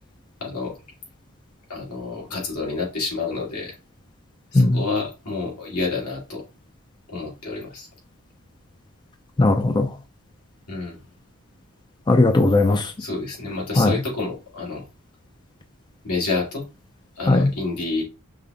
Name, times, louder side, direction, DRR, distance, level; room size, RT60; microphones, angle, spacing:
voice 1, 0.4-0.8 1.7-3.8 4.5-6.4 7.1-7.9 10.7-11.0 13.0-14.9 16.0-16.7 17.2-18.0, left 3 dB, 85° left, 2.3 m, -29 dB
voice 2, 9.4-9.9 12.1-12.9 13.8-13.9 17.3-17.5, left 2 dB, 20° left, 0.4 m, -17 dB
5.3 x 2.3 x 3.4 m
head